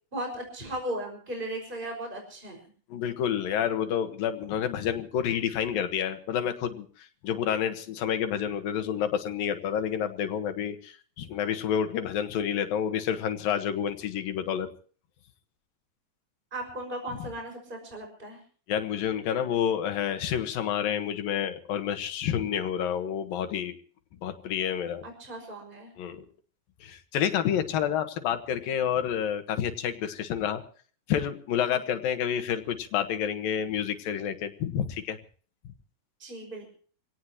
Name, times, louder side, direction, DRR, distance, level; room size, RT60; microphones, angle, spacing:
voice 1, 0.1-2.6 16.5-18.4 25.0-25.9 36.2-36.6, right 1 dB, 15° right, 2 dB, 5.8 m, -36 dB
voice 2, 2.9-14.7 18.7-23.8 24.2-25.0 26.0-26.2 26.8-30.6 31.1-35.2, left 9 dB, 90° left, 8 dB, 3.2 m, -29 dB
26.0 x 18.0 x 3.0 m, 0.44 s
omnidirectional pair, 4.0 m